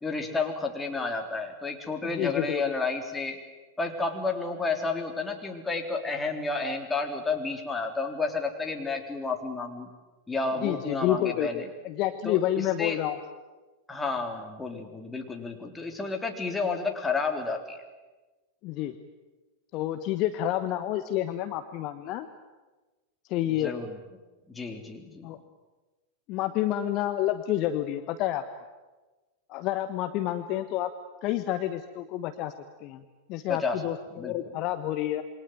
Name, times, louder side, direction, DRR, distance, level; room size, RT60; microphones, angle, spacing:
voice 1, 0.0-3.4 3.8-9.9 10.3-11.7 12.2-13.0 13.9-17.8 23.6-23.9 24.5-25.3 33.5-33.8 34.2-34.6, left 3 dB, 10° left, 3 dB, 3.7 m, -31 dB
voice 2, 2.0-2.8 10.6-13.2 18.6-19.0 19.7-22.3 23.3-23.7 25.2-25.4 26.3-28.4 29.5-30.9 31.2-32.5 32.8-33.0 33.3-35.2, left 13 dB, 40° left, 9 dB, 1.3 m, -29 dB
27.5 x 23.5 x 9.2 m, 1.2 s
figure-of-eight pair, 90°, 0 cm